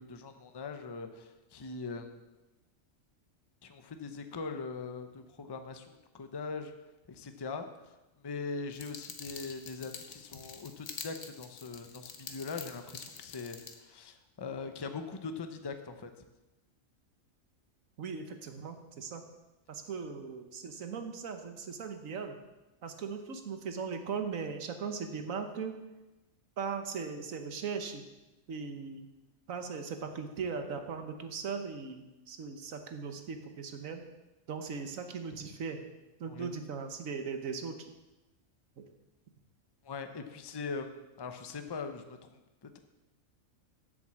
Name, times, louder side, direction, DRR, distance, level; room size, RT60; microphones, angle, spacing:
voice 1, 0.0-2.1 3.6-6.7 7.1-7.7 8.2-16.1 35.3-35.4 36.3-36.5 39.8-42.8, left 4 dB, 25° left, 7 dB, 0.6 m, -41 dB
sound 1, 8.7-13.7, left 6 dB, 90° left, 1.4 m, -46 dB
voice 2, 18.0-19.2 19.7-22.4 22.8-25.7 26.6-28.0 28.5-29.1 29.5-34.0 34.5-35.8 36.2-37.8 38.8-38.9, right 5 dB, 80° right, 6 dB, 1.4 m, -38 dB
7.8 x 7.5 x 7.3 m, 1.1 s
omnidirectional pair, 1.4 m